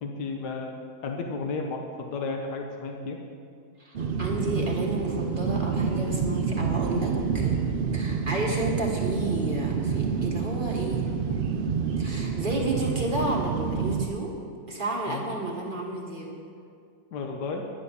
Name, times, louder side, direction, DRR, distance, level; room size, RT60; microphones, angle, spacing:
voice 1, 0.0-3.2 15.1-15.2 17.1-17.6, left 4 dB, 75° left, 2 dB, 1.6 m, -33 dB
voice 2, 3.8-7.6 7.9-11.1 12.0-14.3 14.7-16.3, right 1 dB, 30° right, -2 dB, 1.8 m, -31 dB
sound 1, 3.9-14.0, right 6 dB, 85° right, 0.4 m, -28 dB
11.0 x 10.5 x 6.8 m, 2.3 s
omnidirectional pair, 1.8 m